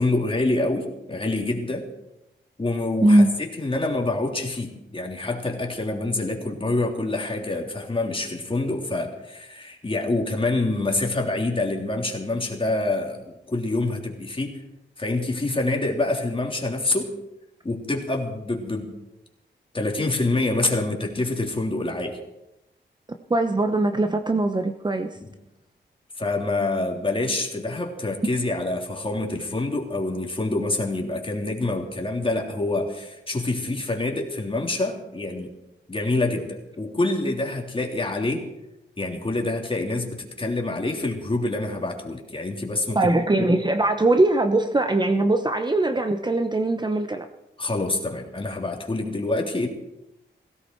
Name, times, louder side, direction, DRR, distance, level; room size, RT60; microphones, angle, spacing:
voice 1, 0.0-1.9 2.6-14.6 15.0-17.1 17.6-18.9 19.7-22.2 25.2-25.3 26.2-35.5 35.9-38.5 39.0-43.1 43.5-43.6 47.6-49.7, left 2 dB, 25° left, 0 dB, 3.3 m, -26 dB
voice 2, 3.0-3.3 23.3-25.2 42.9-47.2, right 2 dB, 20° right, 6 dB, 0.9 m, -21 dB
17.5 x 16.5 x 4.7 m, 0.91 s
wide cardioid pair, 85°, 19 cm